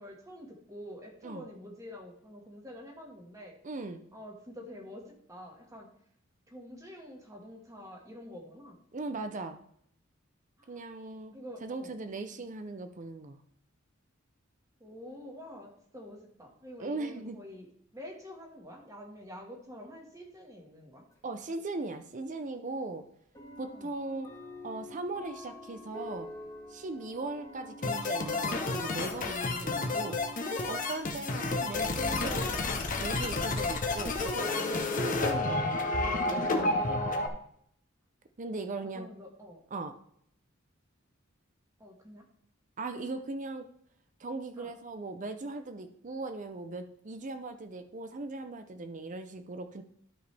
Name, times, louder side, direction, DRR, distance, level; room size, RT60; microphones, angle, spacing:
voice 1, 0.0-3.6 4.1-5.9 6.5-8.8 10.6-10.8 11.3-11.9 14.8-17.7 17.9-21.1 23.7-23.9 38.8-39.6 41.8-42.3 44.6-44.7, left 1 dB, 15° right, 0 dB, 1.7 m, -47 dB
voice 2, 3.6-4.0 8.9-9.6 10.7-11.3 11.6-13.4 16.8-17.4 21.2-23.0 23.6-24.3 24.6-26.3 26.7-30.2 30.6-32.7 33.0-35.6 36.0-37.0 38.4-39.1 39.7-39.9 42.8-43.6 44.2-49.8, right 3 dB, 40° right, 8 dB, 0.6 m, -39 dB
sound 1, 21.1-21.2 22.3-22.4 23.3-36.6, left 1 dB, 15° left, 1.7 m, -49 dB
sound 2, 27.8-37.3, left 2 dB, 40° left, 0.9 m, -30 dB
12.0 x 5.1 x 3.4 m, 0.70 s
head